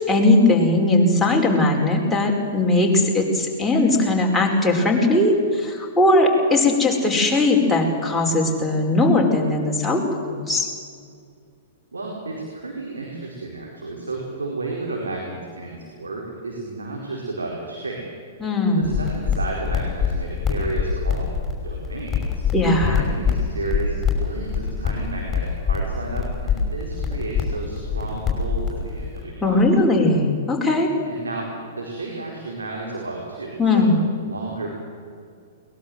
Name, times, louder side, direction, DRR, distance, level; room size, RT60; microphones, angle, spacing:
voice 1, 0.1-10.7 18.4-19.0 22.5-23.0 29.4-30.9 33.6-34.0, left 2 dB, 5° left, -3 dB, 4.9 m, -19 dB
voice 2, 11.9-18.0 18.7-21.3 21.6-22.4 22.9-29.6 31.0-33.8 34.2-34.7, right 2 dB, 85° right, -1 dB, 4.4 m, -32 dB
sound 1, 18.8-29.2, left 6 dB, 20° left, 6.0 m, -25 dB
22.0 x 20.0 x 7.8 m, 2.2 s
figure-of-eight pair, 110°, 0 cm